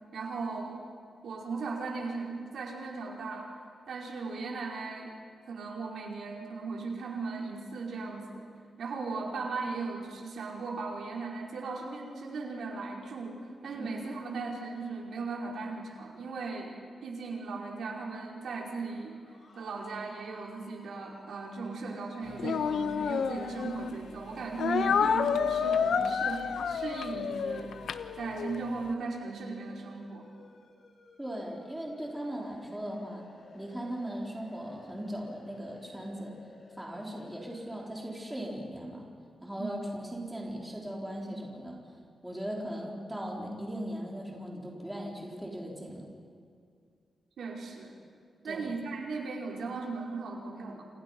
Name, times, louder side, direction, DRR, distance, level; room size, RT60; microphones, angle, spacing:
voice 1, 0.1-0.8 1.2-3.5 3.9-5.1 5.5-8.4 8.8-16.7 17.0-19.2 19.5-27.8 28.2-30.3 39.6-39.8 47.4-47.9 48.4-50.9, right 4 dB, 80° right, -1 dB, 5.0 m, -37 dB
sound 1, 18.9-37.9, left 3 dB, 55° left, 4.5 m, -55 dB
Speech, 22.4-24.0 24.6-28.6, left 6 dB, 80° left, 1.0 m, -29 dB
voice 2, 31.2-33.3 33.5-36.4 36.8-39.1 39.4-41.8 42.2-46.1 48.4-48.7, equal, 5° right, -2 dB, 3.8 m, -38 dB
29.5 x 28.0 x 5.5 m, 2.2 s
wide cardioid pair, 165°, 0 cm